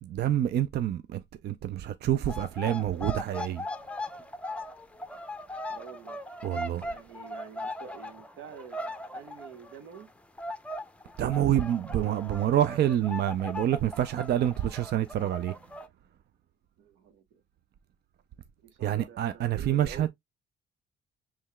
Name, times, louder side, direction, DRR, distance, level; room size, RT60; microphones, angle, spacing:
voice 1, 0.0-3.6 6.4-6.9 11.2-15.5 18.8-20.1, right 11 dB, 55° right, 0.4 m, -27 dB
sound 1, 2.2-10.1 10.4-15.9, left 1 dB, 5° left, 0.6 m, -39 dB
voice 2, 5.7-6.2 6.8-10.1 13.9-14.0 14.3-14.5 15.2-15.3 16.8-17.4 18.6-20.1, right 7 dB, 85° right, 1.0 m, -48 dB
5.5 x 3.2 x 2.2 m
cardioid pair, 90°, 20 cm